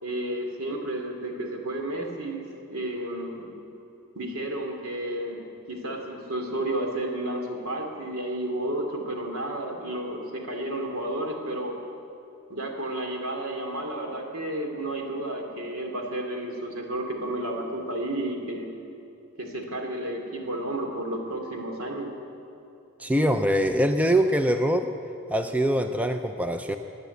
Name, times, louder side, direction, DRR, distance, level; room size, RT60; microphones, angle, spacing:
voice 1, 0.0-3.5 4.1-5.4 5.7-11.8 12.5-18.7 19.4-22.1, right 1 dB, 75° right, 2 dB, 2.6 m, -32 dB
voice 2, 23.0-24.9 25.3-26.8, equal, 5° right, 7 dB, 0.4 m, -23 dB
16.0 x 10.0 x 8.4 m, 2.8 s
head